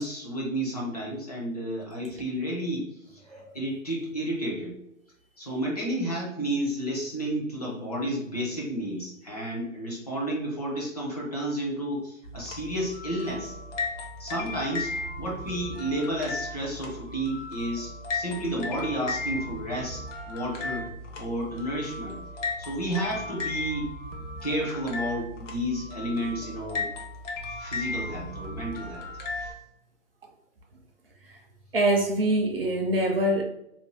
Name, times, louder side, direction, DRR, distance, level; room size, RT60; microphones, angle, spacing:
voice 1, 0.0-2.9 3.1-4.7 5.4-13.6 14.2-20.9 21.2-22.2 22.6-23.9 24.4-26.9 27.5-29.1 29.4-29.5, right 1 dB, 30° left, -3 dB, 0.5 m, -31 dB
sound 1, 12.2-29.5, left 3 dB, 60° left, 0.8 m, -36 dB
voice 2, 31.7-33.4, right 1 dB, 45° right, 2 dB, 0.5 m, -24 dB
2.6 x 2.3 x 3.1 m, 0.82 s
hypercardioid pair, 165°, 40 cm